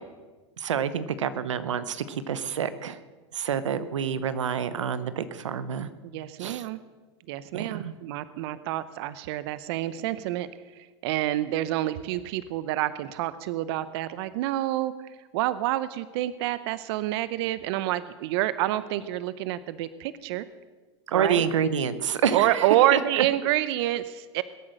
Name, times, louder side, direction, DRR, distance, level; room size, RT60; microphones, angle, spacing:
voice 1, 0.6-3.0 3.3-5.9 6.4-6.6 7.5-7.9 21.1-23.0, right 7 dB, 90° right, 13 dB, 0.9 m, -28 dB
voice 2, 6.0-6.8 7.3-10.5 11.0-14.9 15.3-20.4 21.1-21.5 22.3-24.4, right 14 dB, 60° right, 15 dB, 0.8 m, -27 dB
21.0 x 8.7 x 6.6 m, 1.3 s
hypercardioid pair, 115°, 15 cm